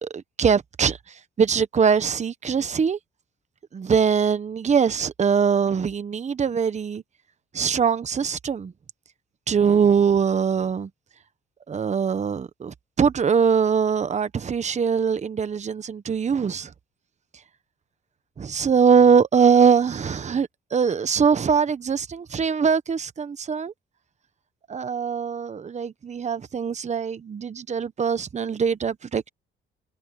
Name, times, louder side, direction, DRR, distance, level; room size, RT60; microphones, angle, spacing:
voice 1, 0.0-3.0 3.7-7.0 7.5-8.7 9.5-10.9 11.7-16.7 18.4-23.7 24.7-29.3, right 6 dB, 35° right, 1.0 m, -22 dB
cardioid pair, 90°, 20 cm